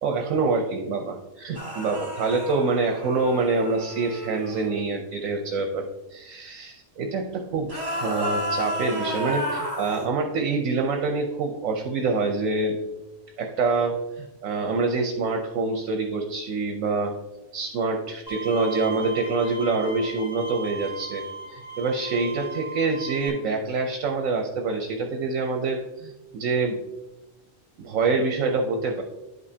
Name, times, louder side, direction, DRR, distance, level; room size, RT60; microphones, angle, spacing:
voice 1, 0.0-5.9 6.1-12.8 13.4-17.1 17.5-21.2 21.5-26.8 27.8-29.0, right 3 dB, 75° right, 3 dB, 1.1 m, -26 dB
sound 1, 1.5-4.7 7.6-10.1, equal, 25° right, 2.9 m, -32 dB
Bowed string instrument, 18.3-23.3, right 2 dB, 10° left, 2.0 m, -37 dB
11.0 x 5.3 x 2.7 m, 1.0 s
omnidirectional pair, 1.4 m